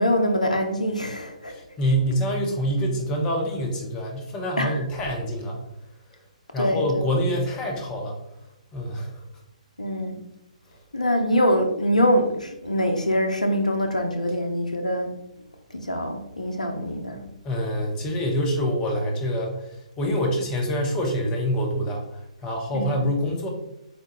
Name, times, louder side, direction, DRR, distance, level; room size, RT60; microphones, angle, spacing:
voice 1, 0.0-1.5 4.6-4.8 6.6-7.0 9.8-10.2 10.9-15.1 15.7-17.2 22.7-22.9, equal, 80° left, 4 dB, 0.6 m, -24 dB
voice 2, 1.5-5.6 6.5-8.2 8.7-9.1 17.4-19.5 20.0-22.0 22.4-23.5, equal, 20° left, 1 dB, 0.6 m, -26 dB
4.3 x 2.2 x 2.9 m, 0.83 s
figure-of-eight pair, 125°, 4 cm